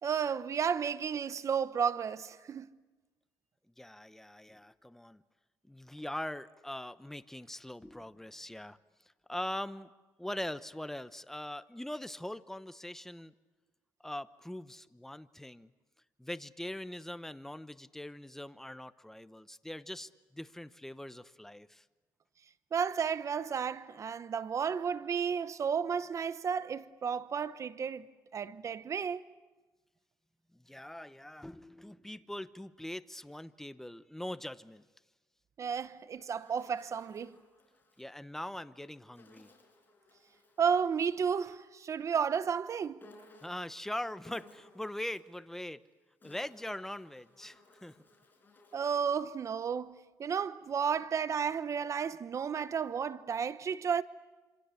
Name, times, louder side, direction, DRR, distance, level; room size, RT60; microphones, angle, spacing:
voice 1, 0.0-2.8 22.7-28.1 28.3-29.2 35.6-37.4 40.6-43.0 48.7-54.0, right 7 dB, 45° right, 0.9 m, -32 dB
voice 2, 3.8-5.2 5.6-8.8 9.3-9.9 10.2-13.3 14.0-15.7 16.2-21.8 30.5-34.8 38.0-39.5 43.4-45.8 46.2-48.0, left 1 dB, 5° left, 0.9 m, -42 dB
Insect, 35.9-38.1 39.2-41.2 43.0-43.8 44.2-45.4 46.0-49.3, left 2 dB, 25° left, 6.4 m, -60 dB
26.5 x 26.5 x 8.4 m
cardioid pair, 95°, 7 cm